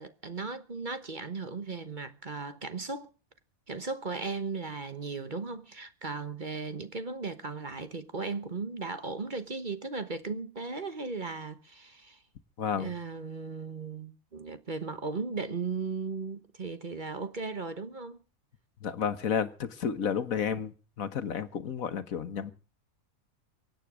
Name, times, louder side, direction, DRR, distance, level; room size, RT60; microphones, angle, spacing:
voice 1, 0.0-3.1 3.7-12.2 12.8-18.2, right 4 dB, 35° right, 1.3 m, -36 dB
voice 2, 12.6-12.9 18.8-22.5, left 7 dB, 75° left, 1.6 m, -31 dB
24.0 x 9.3 x 6.2 m
omnidirectional pair, 1.5 m